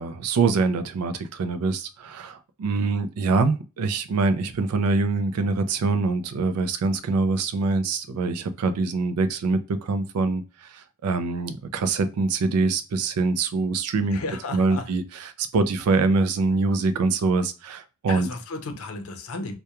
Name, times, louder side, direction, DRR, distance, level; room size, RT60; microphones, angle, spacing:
voice 1, 0.0-14.2 14.5-18.3, right 3 dB, 85° right, 0.4 m, -24 dB
voice 2, 14.1-14.9 18.1-19.5, left 3 dB, 65° left, 0.5 m, -34 dB
2.2 x 2.2 x 2.9 m
head